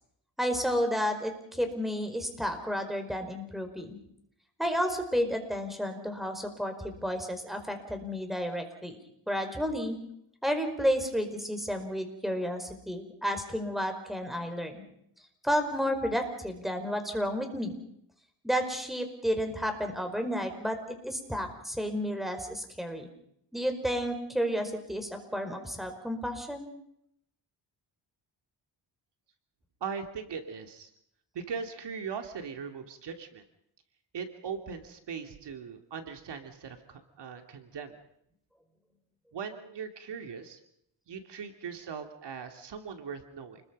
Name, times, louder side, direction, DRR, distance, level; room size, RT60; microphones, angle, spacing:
voice 1, 0.4-4.0 4.6-9.0 9.3-10.0 10.4-14.8 15.4-17.8 18.4-23.1 23.5-26.6, equal, ahead, 6 dB, 5.1 m, -31 dB
voice 2, 29.8-30.9 31.3-33.4 34.1-38.0 39.3-40.6 41.1-43.6, right 6 dB, 70° right, 6 dB, 2.8 m, -39 dB
29.5 x 21.5 x 5.4 m, 0.74 s
cardioid pair, 100°, 43 cm